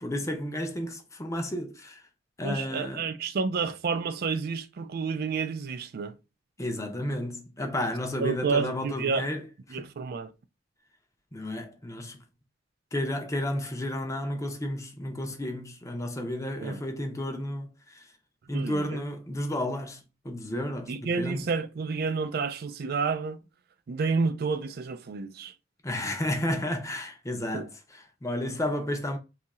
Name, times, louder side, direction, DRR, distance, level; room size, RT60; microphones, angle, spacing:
voice 1, 0.0-2.0 2.4-3.1 6.6-9.4 9.7-9.9 11.3-12.2 12.9-18.1 18.5-20.0 20.2-21.5 25.8-29.2, left 1 dB, 15° left, 0.6 m, -32 dB
voice 2, 2.4-6.1 8.2-9.3 9.7-10.3 16.6-16.8 18.5-19.0 20.9-23.4 23.9-25.5 27.5-27.7, right 5 dB, 55° right, 0.4 m, -30 dB
2.7 x 2.4 x 4.1 m
head